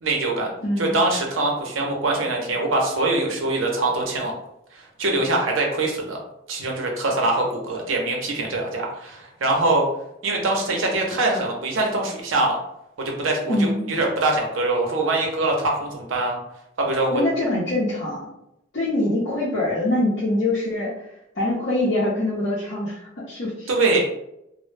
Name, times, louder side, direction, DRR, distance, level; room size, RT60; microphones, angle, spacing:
voice 1, 0.0-0.5 0.8-4.3 4.7-6.2 6.5-9.9 10.2-12.6 13.0-16.4 16.8-17.2 23.7-24.0, right 2 dB, 90° right, 0 dB, 0.6 m, -23 dB
voice 2, 0.6-1.0 13.5-13.9 17.1-18.3 18.7-21.1 21.3-23.7, left 1 dB, 55° left, -10 dB, 0.6 m, -24 dB
2.1 x 2.0 x 3.2 m, 0.83 s
head